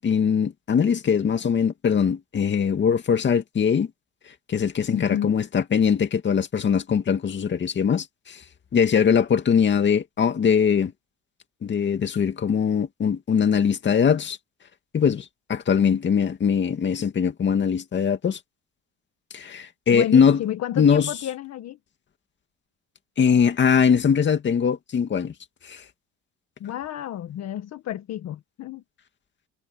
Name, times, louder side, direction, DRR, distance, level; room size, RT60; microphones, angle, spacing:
voice 1, 0.0-3.9 4.5-8.4 8.7-10.9 11.6-14.4 14.9-18.4 19.3-20.4 20.8-21.1 23.2-25.3 25.7-25.8, left 7 dB, 35° left, 2.5 m, -21 dB
voice 2, 4.9-5.4 15.8-16.0 19.9-21.8 26.6-28.8, left 11 dB, 55° left, 1.8 m, -31 dB
cardioid pair, 125°, 31 cm